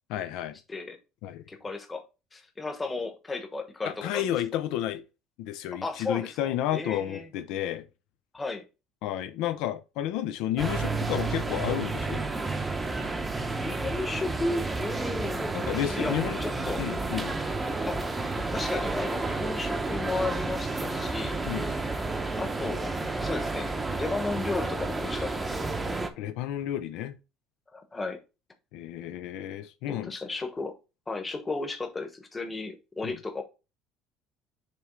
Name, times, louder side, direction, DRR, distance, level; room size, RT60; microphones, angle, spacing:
voice 1, 0.1-0.5 1.2-1.4 3.9-5.0 5.4-7.9 9.0-12.2 15.5-16.4 16.8-17.4 21.5-21.7 26.2-27.1 28.7-30.2 33.0-33.2, left 12 dB, 70° left, 0.6 m, -31 dB
voice 2, 1.5-2.0 2.3-4.3 5.8-7.3 8.3-8.6 13.6-16.8 17.9-18.0 18.4-21.4 21.7-21.8 22.4-25.6 27.7-28.2 29.9-30.7 31.1-33.4, left 3 dB, 15° left, 1.1 m, -34 dB
sound 1, 10.6-26.1, right 3 dB, 10° right, 0.7 m, -31 dB
6.9 x 3.2 x 4.6 m
cardioid pair, 155°, 0 cm